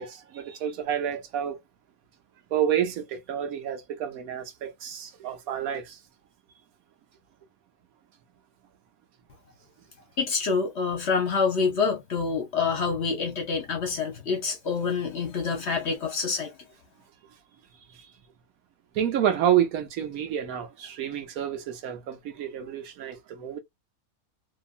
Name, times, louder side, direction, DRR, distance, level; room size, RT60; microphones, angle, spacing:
voice 1, 0.0-1.6 2.5-6.0 17.9-18.1 18.9-23.6, right 9 dB, 75° right, 1.1 m, -29 dB
voice 2, 10.2-16.5, left 5 dB, 55° left, 1.0 m, -27 dB
2.8 x 2.4 x 2.3 m
omnidirectional pair, 1.6 m